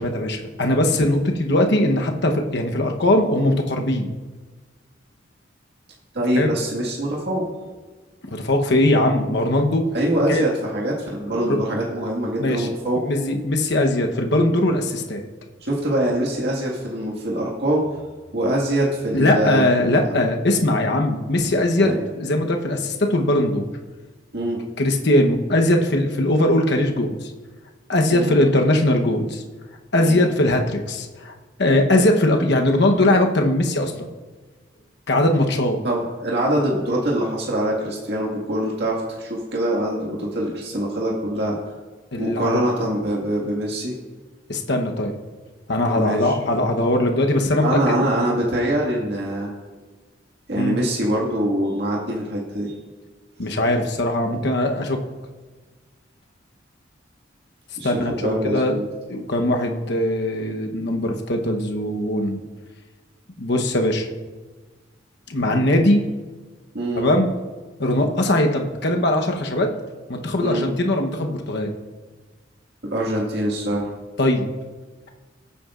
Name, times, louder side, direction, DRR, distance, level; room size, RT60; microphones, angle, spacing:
voice 1, 0.0-4.1 6.4-6.5 8.3-9.8 10.3-10.4 11.5-11.6 12.4-12.7 13.0-15.2 19.1-23.7 24.8-27.3 27.9-29.4 29.9-31.3 31.6-33.9 35.1-35.8 42.1-42.6 44.5-45.1 45.7-48.0 50.6-50.8 53.4-55.0 57.8-58.8 59.1-62.4 63.4-64.1 65.3-66.0 66.9-67.3 67.8-69.7 70.1-71.7 74.2-74.4, left 1 dB, 65° left, 3 dB, 1.0 m, -20 dB
voice 2, 6.1-7.5 9.9-13.1 15.6-17.8 18.3-20.1 21.8-22.0 24.3-24.6 28.1-28.3 30.0-30.2 35.8-41.6 42.2-43.9 45.9-46.3 47.6-49.5 50.5-52.7 54.3-54.5 57.8-58.9 66.7-67.1 70.4-70.7 72.8-73.9, right 1 dB, 65° right, -3 dB, 1.9 m, -24 dB
19.5 x 8.4 x 2.5 m, 1.3 s
head